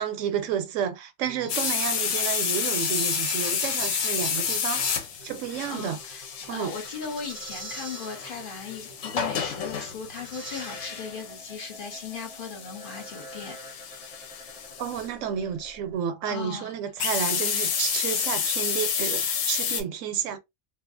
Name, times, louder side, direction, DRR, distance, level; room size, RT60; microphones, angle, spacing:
voice 1, 0.0-5.0 5.2-6.0 6.5-6.7 14.8-20.4, right 8 dB, 85° right, 0.9 m, -31 dB
sound 1, 1.2-16.0, right 3 dB, 35° right, 0.6 m, -44 dB
sound 2, 1.5-15.1 17.0-19.8, left 7 dB, 90° left, 1.0 m, -30 dB
voice 2, 5.7-13.6 13.8-14.5 16.2-16.7, left 5 dB, 50° left, 0.9 m, -38 dB
2.6 x 2.4 x 2.4 m
omnidirectional pair, 1.3 m